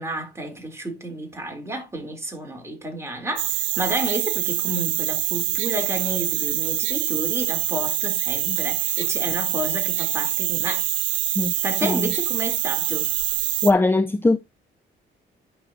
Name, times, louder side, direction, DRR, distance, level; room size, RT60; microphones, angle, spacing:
voice 1, 0.0-10.8 11.6-13.1, right 1 dB, 15° right, 4.1 m, -31 dB
sound 1, 3.4-13.7, right 14 dB, 75° right, 0.6 m, -25 dB
voice 2, 13.6-14.4, left 2 dB, 10° left, 0.5 m, -20 dB
9.9 x 6.3 x 3.0 m
cardioid pair, 90°, 20 cm